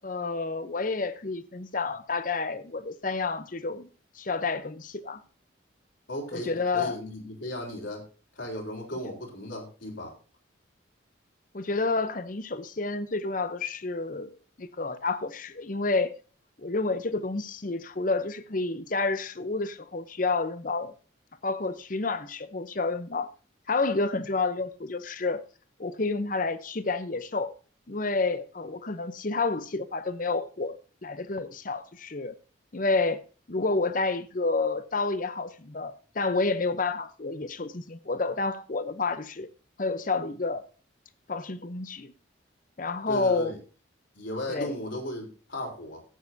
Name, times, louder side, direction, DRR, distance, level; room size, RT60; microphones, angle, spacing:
voice 1, 0.0-3.9 4.1-5.2 6.3-7.0 11.5-16.1 16.6-20.9 21.4-23.3 23.7-25.4 25.8-27.5 27.9-30.8 31.0-32.4 32.7-33.2 33.5-39.5 39.8-40.6 41.3-42.1 42.8-43.5 44.5-44.7, left 3 dB, 40° left, 0.7 m, -29 dB
voice 2, 6.1-8.1 8.4-10.1 43.1-43.6 44.2-46.0, left 1 dB, 70° left, 3.8 m, -36 dB
14.0 x 9.3 x 2.7 m
head